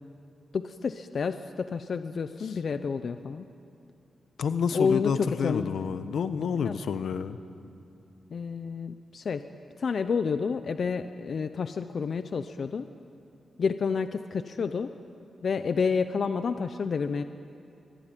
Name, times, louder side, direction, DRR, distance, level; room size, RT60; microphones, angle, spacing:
voice 1, 0.5-3.5 4.7-5.8 6.6-6.7 8.3-9.4 9.8-12.9 13.6-14.9 15.4-17.2, left 5 dB, 50° left, 10 dB, 0.7 m, -29 dB
voice 2, 4.4-7.4, left 6 dB, 75° left, 11 dB, 1.0 m, -29 dB
24.0 x 23.0 x 9.1 m, 2.6 s
wide cardioid pair, 155°, 0 cm